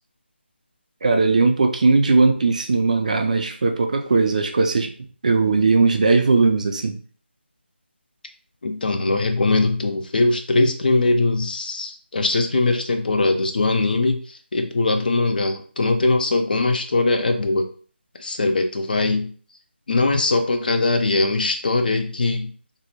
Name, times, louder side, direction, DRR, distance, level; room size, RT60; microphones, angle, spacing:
voice 1, 1.0-4.9 5.2-7.0, right 3 dB, 40° right, 5 dB, 0.3 m, -18 dB
voice 2, 8.6-14.2 14.5-17.7 18.2-19.3 19.9-22.5, left 2 dB, 50° left, 6 dB, 0.4 m, -21 dB
2.6 x 2.1 x 2.8 m, 0.42 s
figure-of-eight pair, 160°, 6 cm